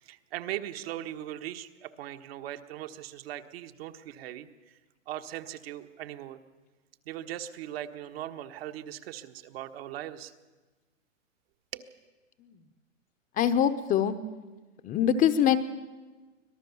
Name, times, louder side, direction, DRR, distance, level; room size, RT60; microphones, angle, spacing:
voice 1, 0.0-4.8 5.1-6.4 7.1-10.3 11.7-11.9, right 12 dB, 50° right, 8 dB, 1.5 m, -39 dB
voice 2, 13.4-14.2 14.8-15.6, left 9 dB, 20° left, 10 dB, 0.9 m, -23 dB
24.5 x 18.0 x 7.1 m, 1.3 s
hypercardioid pair, 125°, 38 cm